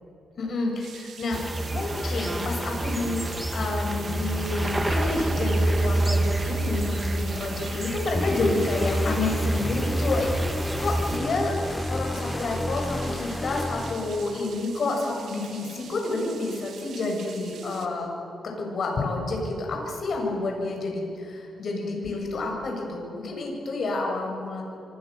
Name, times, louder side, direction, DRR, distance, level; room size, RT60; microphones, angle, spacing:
voice 1, 0.4-1.4 1.7-11.5 11.9-18.1 18.4-24.6, left 2 dB, 55° left, 1 dB, 7.7 m, -29 dB
sound 1, 0.8-17.9, right 7 dB, 75° right, 2.5 m, -46 dB
sound 2, 1.3-11.2, right 1 dB, 15° right, 1.8 m, -27 dB
sound 3, 8.1-14.6, left 1 dB, 10° left, 0.5 m, -31 dB
27.5 x 24.0 x 7.0 m, 3.0 s
cardioid pair, 105°, 0 cm